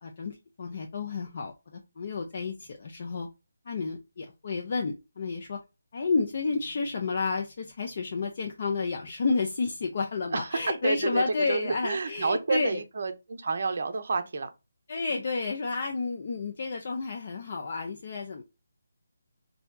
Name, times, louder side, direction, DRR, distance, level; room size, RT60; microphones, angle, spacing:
voice 1, 0.0-3.3 3.7-5.6 5.9-12.8 14.9-18.4, left 4 dB, 45° left, 0.4 m, -31 dB
voice 2, 10.3-14.5, right 4 dB, 50° right, 0.5 m, -30 dB
4.2 x 2.7 x 2.2 m
figure-of-eight pair, 150°, 0 cm